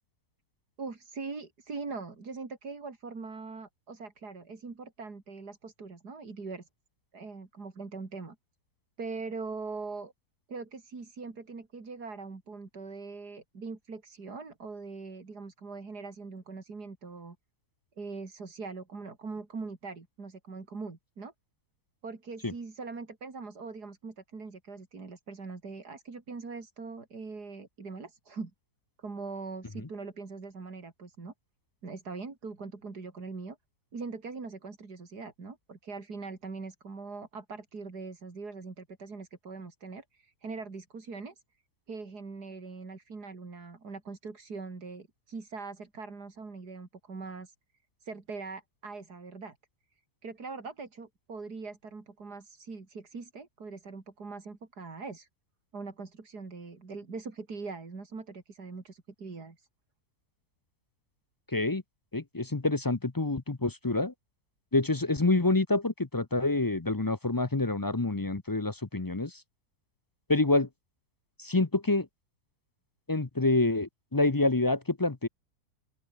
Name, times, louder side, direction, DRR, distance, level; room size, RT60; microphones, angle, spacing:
voice 1, 0.8-6.7 7.1-8.4 9.0-10.1 10.5-17.4 18.0-21.3 22.0-28.5 29.0-31.3 31.8-33.6 33.9-41.4 41.9-47.5 48.0-49.6 50.2-55.3 55.7-59.7, right 4 dB, 85° right, 3.8 m, -42 dB
voice 2, 61.5-61.8 62.1-64.1 64.7-69.4 70.3-70.7 71.4-72.1 73.1-75.3, left 2 dB, 20° left, 0.6 m, -27 dB
open air
omnidirectional pair, 1.7 m